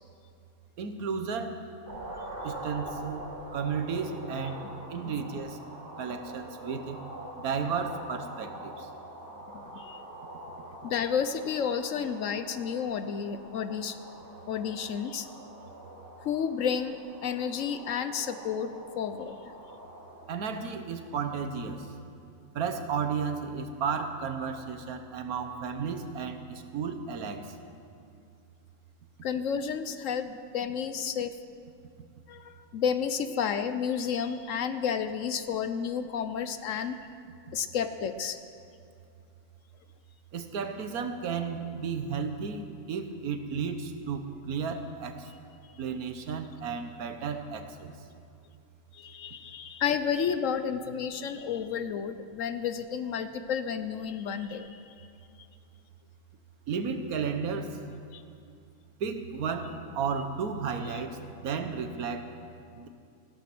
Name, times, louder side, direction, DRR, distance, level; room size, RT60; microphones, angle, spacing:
voice 1, 0.8-1.6 2.4-3.2 3.5-4.6 4.9-5.6 6.0-7.0 7.4-8.9 20.3-21.9 22.5-27.4 40.3-45.3 45.8-47.9 56.7-57.8 59.0-62.3 62.8-62.9, right 6 dB, 85° right, 8 dB, 1.5 m, -33 dB
sound 1, 1.9-20.3, right 1 dB, 45° right, 3.3 m, -44 dB
voice 2, 9.5-10.0 10.8-14.0 14.5-15.3 16.2-19.3 29.2-31.3 32.3-37.0 37.5-38.4 48.9-54.9 58.1-58.2, left 7 dB, 65° left, 10 dB, 1.0 m, -31 dB
16.0 x 12.5 x 6.0 m, 2.5 s
omnidirectional pair, 1.5 m